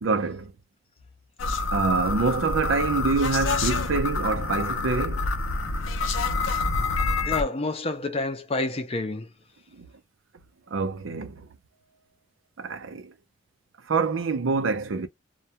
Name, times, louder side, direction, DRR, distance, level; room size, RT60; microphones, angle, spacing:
voice 1, 0.0-0.5 1.7-5.3 9.7-9.9 10.7-11.5 12.6-13.1 13.9-15.1, right 4 dB, 90° right, 0.5 m, -26 dB
sound 1, 1.4-7.4, left 3 dB, 85° left, 0.6 m, -27 dB
voice 2, 7.2-9.3, left 2 dB, 30° left, 0.5 m, -28 dB
2.2 x 2.2 x 2.7 m
head